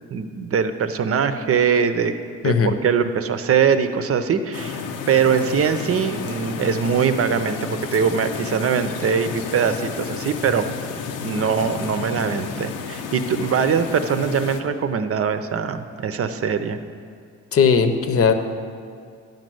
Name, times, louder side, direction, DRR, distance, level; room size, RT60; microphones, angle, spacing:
voice 1, 0.1-2.1 2.4-10.7 11.2-16.8, right 6 dB, 50° right, 9 dB, 0.7 m, -22 dB
sound 1, 4.5-14.6, left 6 dB, 85° left, 0.8 m, -31 dB
voice 2, 17.5-18.3, left 6 dB, 50° left, 8 dB, 0.9 m, -17 dB
10.5 x 5.3 x 7.7 m, 2.2 s
cardioid pair, 90°, 30 cm